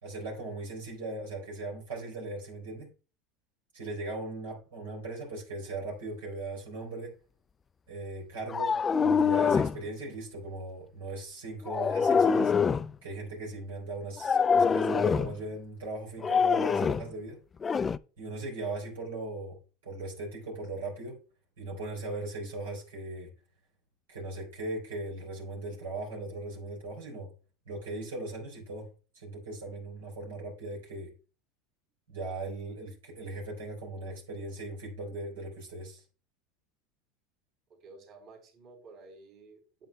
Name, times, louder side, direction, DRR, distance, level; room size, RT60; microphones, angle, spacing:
voice 1, 0.0-2.9 3.7-7.1 7.9-12.5 13.0-17.4 18.2-19.6 19.8-21.2 21.6-23.3 24.1-27.3 27.7-28.9 29.1-31.1 32.1-36.0, right 2 dB, 90° right, 3.8 m, -38 dB
sound 1, 8.5-9.8 11.7-12.9 14.2-15.3 16.2-17.1 17.6-18.0, left 6 dB, 25° left, 0.3 m, -25 dB
voice 2, 37.7-39.9, right 3 dB, 55° right, 3.8 m, -52 dB
9.1 x 7.7 x 2.3 m
hypercardioid pair, 95°, 0 cm